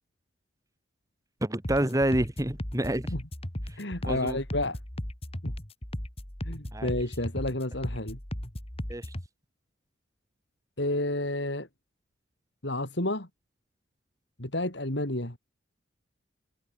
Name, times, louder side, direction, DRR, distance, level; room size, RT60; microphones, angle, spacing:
voice 1, 1.4-3.1 3.7-3.8 4.0-4.4 6.7-6.9 8.9-9.1, right 1 dB, 15° right, 1.3 m, -28 dB
sound 1, 1.6-9.3, equal, 30° left, 2.9 m, -36 dB
voice 2, 3.8-4.8 5.4-5.5 6.4-8.2 10.8-11.7 12.6-13.3 14.4-15.4, left 1 dB, 65° left, 4.0 m, -30 dB
head